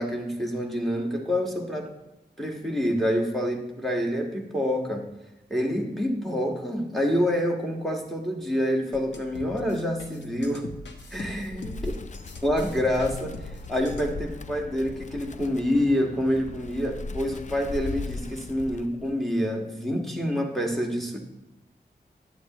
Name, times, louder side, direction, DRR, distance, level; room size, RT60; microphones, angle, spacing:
voice 1, 0.0-1.9 2.4-5.0 5.5-10.7 11.1-11.7 12.4-13.3 13.7-21.2, equal, ahead, 0 dB, 1.6 m, -27 dB
sound 1, 8.9-14.2, left 2 dB, 85° left, 1.0 m, -42 dB
Wind, 11.5-19.2, left 3 dB, 45° left, 0.4 m, -38 dB
11.0 x 8.1 x 3.0 m, 0.99 s
wide cardioid pair, 90°, 18 cm